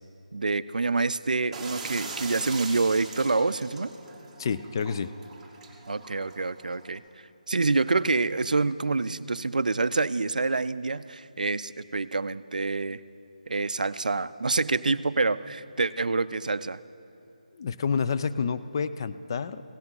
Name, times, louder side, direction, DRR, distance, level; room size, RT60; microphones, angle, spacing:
voice 1, 0.3-3.9 5.9-7.0 7.5-13.0 13.5-16.8, right 3 dB, 80° right, 15 dB, 0.3 m, -27 dB
sound 1, 1.5-7.0, right 4 dB, 10° right, 1.1 m, -41 dB
voice 2, 4.4-5.1 17.5-19.6, left 6 dB, 35° left, 12 dB, 0.3 m, -29 dB
16.5 x 7.9 x 5.5 m, 2.9 s
figure-of-eight pair, 160°, 4 cm